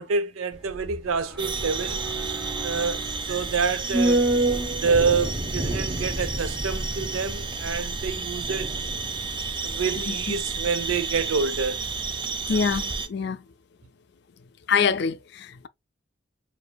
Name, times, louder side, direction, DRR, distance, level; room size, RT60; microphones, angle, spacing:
voice 1, 0.0-2.0 2.6-3.0 3.3-4.2 4.8-8.7 9.6-11.8 12.5-12.6, right 5 dB, 80° right, 0.5 m, -27 dB
sound 1, 0.5-11.0 11.3-11.4, right 1 dB, 5° right, 0.9 m, -30 dB
sound 2, 1.4-13.1, right 4 dB, 20° right, 0.4 m, -32 dB
voice 2, 12.5-13.4 14.7-15.7, left 6 dB, 55° left, 0.4 m, -25 dB
6.8 x 2.6 x 2.3 m
head